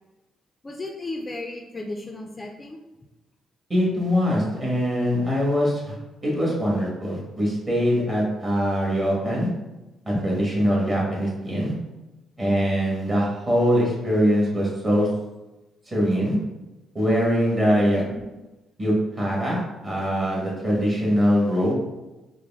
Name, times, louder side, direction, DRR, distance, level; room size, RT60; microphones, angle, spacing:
voice 1, 0.6-2.8 10.1-10.2, left 2 dB, 25° left, 1 dB, 0.4 m, -34 dB
voice 2, 3.7-6.0 6.2-9.5 10.0-11.7 12.4-15.1 15.9-16.4 16.9-18.0 18.8-21.7, equal, 25° right, -4 dB, 1.5 m, -22 dB
4.8 x 2.0 x 3.5 m, 1.1 s
cardioid pair, 90°, 0 cm